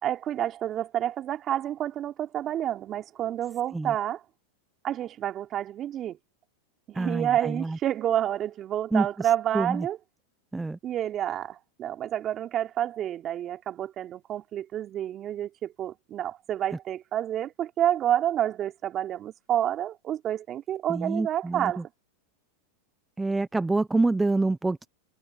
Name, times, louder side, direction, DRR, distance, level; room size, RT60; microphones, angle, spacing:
voice 1, 0.0-4.2 4.8-6.2 6.9-10.0 10.8-21.8, right 11 dB, 35° right, 3.2 m, -29 dB
voice 2, 6.9-7.8 8.9-9.9 10.5-10.8 20.9-21.8 23.2-24.9, right 3 dB, 10° right, 0.7 m, -27 dB
hypercardioid pair, 105°, 0 cm